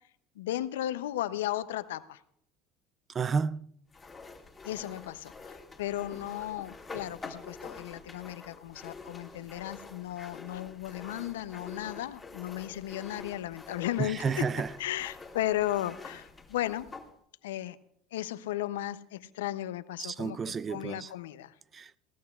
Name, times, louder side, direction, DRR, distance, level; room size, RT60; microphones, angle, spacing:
voice 1, 0.4-2.2 4.6-14.5 14.8-16.9 17.4-17.8 18.1-21.5, left 13 dB, 85° left, 0.5 m, -35 dB
voice 2, 3.1-3.7 14.0-14.7 20.0-21.1 21.7-22.0, right 5 dB, 35° right, 0.5 m, -31 dB
sound 1, 3.9-17.1, left 3 dB, 20° left, 2.1 m, -47 dB
19.5 x 17.5 x 2.4 m
hypercardioid pair, 85°, 0 cm